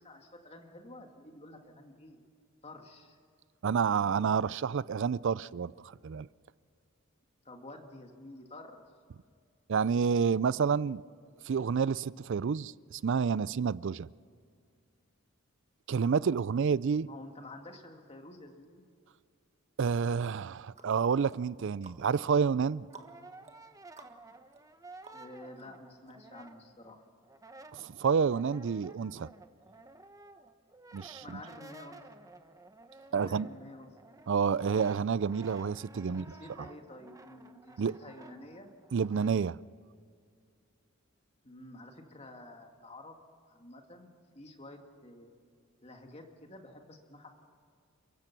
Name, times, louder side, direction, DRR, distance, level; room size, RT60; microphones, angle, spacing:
voice 1, 0.0-2.2 2.6-3.2 7.4-8.8 17.0-18.8 25.1-27.0 31.2-32.0 33.1-33.9 36.0-38.7 41.4-43.2 43.5-45.3 45.8-47.3, left 1 dB, 30° left, 2.1 m, -50 dB
voice 2, 3.6-5.7 6.0-6.3 9.7-11.0 11.4-14.1 15.9-17.1 19.8-22.9 27.7-29.3 30.9-31.4 33.1-33.5 34.3-36.2 37.8-37.9 38.9-39.6, right 6 dB, 60° right, 0.4 m, -29 dB
sound 1, 20.7-25.6 26.1-26.2, right 3 dB, 30° right, 1.6 m, -57 dB
Brass instrument, 22.5-26.9 27.2-39.4, right 2 dB, 15° right, 0.9 m, -54 dB
29.0 x 16.0 x 6.0 m
head